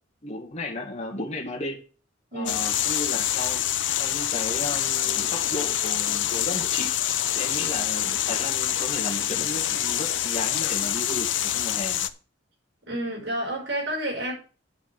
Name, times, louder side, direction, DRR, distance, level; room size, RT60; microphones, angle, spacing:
voice 1, 0.2-1.8 2.3-3.6 4.0-6.9 7.3-12.1, left 2 dB, 40° left, 2.0 m, -34 dB
sound 1, 2.5-12.1, left 11 dB, 85° left, 0.7 m, -26 dB
voice 2, 12.9-14.3, right 1 dB, 75° right, 5.4 m, -29 dB
9.5 x 4.9 x 7.6 m
head